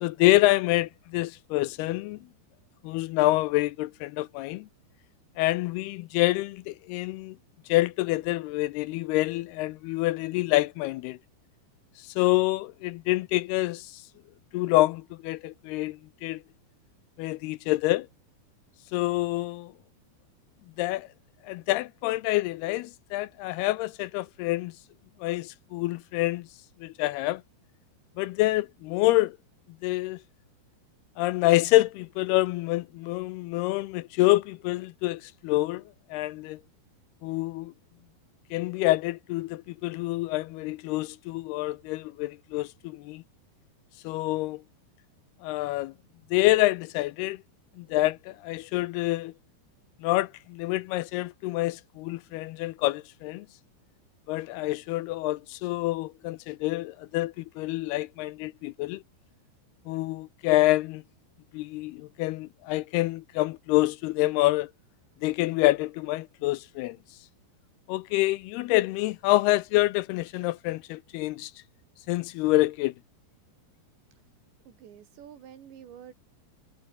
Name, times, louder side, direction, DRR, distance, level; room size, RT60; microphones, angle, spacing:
voice 1, 0.0-2.2 2.8-4.7 5.4-7.4 7.7-11.2 12.0-14.0 14.5-16.4 17.2-18.1 18.9-19.7 20.8-21.1 21.4-24.7 25.2-26.5 26.8-27.4 28.2-29.4 29.8-30.2 31.2-35.8 36.1-36.6 37.2-37.7 38.5-43.2 44.0-44.6 45.4-45.9 46.3-47.4 47.8-49.3 50.0-53.5 54.3-59.0 59.9-61.0 61.5-64.7 65.2-67.0 67.9-71.5 72.1-72.9, left 18 dB, 80° left, 2.4 m, -27 dB
voice 2, 74.7-76.1, right 9 dB, 90° right, 5.2 m, -48 dB
omnidirectional pair, 4.9 m